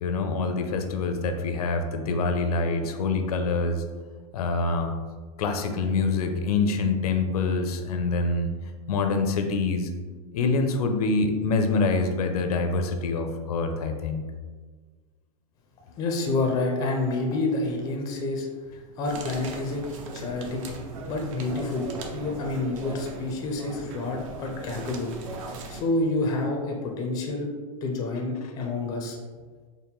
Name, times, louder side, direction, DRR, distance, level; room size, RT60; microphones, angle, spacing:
voice 1, 0.0-3.8 4.3-4.9 5.4-8.5 8.9-9.9 10.3-14.3, left 3 dB, 75° left, 6 dB, 0.5 m, -25 dB
voice 2, 16.0-18.5 19.0-19.8 20.1-20.8 21.1-25.1 25.7-27.5 27.8-29.2, left 2 dB, 20° left, 1 dB, 0.4 m, -28 dB
sound 1, 19.0-25.8, right 3 dB, 60° right, 0.6 m, -38 dB
4.4 x 2.1 x 3.5 m, 1.4 s
supercardioid pair, 150°, 19 cm